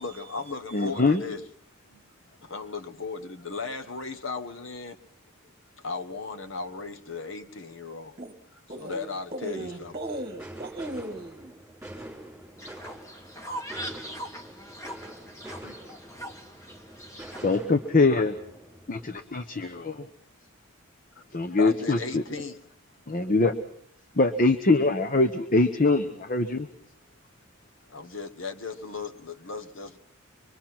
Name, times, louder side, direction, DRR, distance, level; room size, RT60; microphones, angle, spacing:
voice 1, 0.0-1.4 1.9-2.0 2.4-5.0 5.8-8.1 8.8-9.9 21.4-22.6 27.9-30.0, left 4 dB, 60° left, 8 dB, 1.3 m, -36 dB
voice 2, 0.7-1.2 15.6-15.7 17.4-18.4 18.9-20.1 21.3-22.2 23.1-23.5 24.2-26.7, left 3 dB, 40° left, 8 dB, 0.9 m, -23 dB
voice 3, 8.7-11.5 21.7-21.8, right 1 dB, 25° right, 5 dB, 1.7 m, -37 dB
sound 1, 9.5-19.2, right 1 dB, 5° right, 5.9 m, -45 dB
Fowl, 12.6-17.6, equal, 15° left, 1.5 m, -41 dB
25.5 x 23.0 x 6.0 m, 0.67 s
head